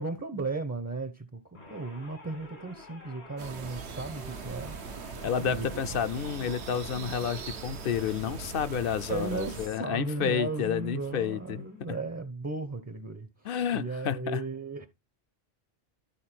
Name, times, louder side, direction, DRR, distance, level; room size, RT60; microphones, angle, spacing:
voice 1, 0.0-5.1 5.4-5.8 9.1-14.9, right 3 dB, 20° right, 0.5 m, -36 dB
sound 1, 1.5-11.9, left 2 dB, 85° left, 2.8 m, -50 dB
sound 2, 3.4-9.7, right 6 dB, 85° right, 1.1 m, -41 dB
voice 2, 5.2-11.6 13.4-14.4, left 8 dB, 65° left, 0.7 m, -30 dB
11.5 x 4.6 x 4.4 m
omnidirectional pair, 1.1 m